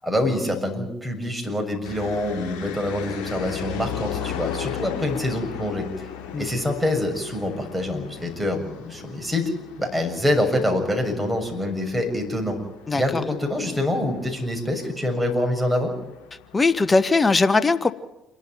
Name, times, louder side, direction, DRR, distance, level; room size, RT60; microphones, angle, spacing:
voice 1, 0.0-6.1 6.4-9.4 9.8-12.6 12.9-15.9, left 1 dB, 5° right, 2 dB, 6.7 m, -25 dB
sound 1, 1.8-17.3, left 9 dB, 60° left, 2.9 m, -37 dB
voice 2, 12.9-13.2 16.5-17.9, left 3 dB, 25° left, 14 dB, 1.1 m, -19 dB
28.0 x 12.0 x 9.3 m, 0.97 s
figure-of-eight pair, 55°, 0 cm